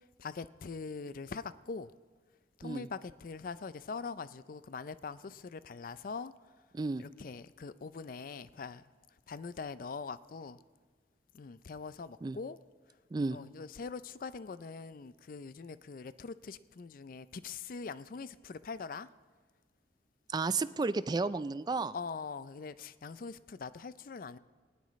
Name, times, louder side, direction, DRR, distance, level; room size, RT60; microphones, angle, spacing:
voice 1, 0.2-1.9 2.6-6.3 7.0-8.8 9.3-10.6 11.3-12.6 13.3-19.1 21.9-24.4, left 4 dB, 50° left, 15 dB, 0.4 m, -43 dB
voice 2, 6.7-7.1 12.2-12.4 13.1-13.4 20.3-21.9, right 3 dB, 25° right, 15 dB, 0.3 m, -32 dB
19.0 x 17.0 x 3.2 m, 1.5 s
head